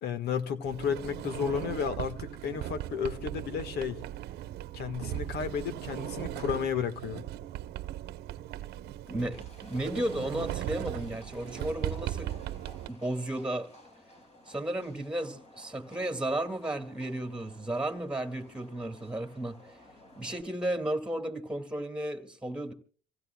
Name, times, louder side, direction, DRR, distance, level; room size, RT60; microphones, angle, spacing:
voice 1, 0.0-4.0 4.7-7.2, left 7 dB, 75° left, 1.6 m, -33 dB
Sliding door, 0.6-12.9, right 13 dB, 75° right, 0.9 m, -38 dB
voice 2, 9.1-12.3 12.9-13.7 14.5-19.7 20.2-22.7, right 1 dB, 5° right, 2.3 m, -34 dB
Livestock farm animals working animals, 9.3-20.4, left 1 dB, 40° left, 6.4 m, -55 dB
27.5 x 16.5 x 2.3 m
cardioid pair, 110°, 17 cm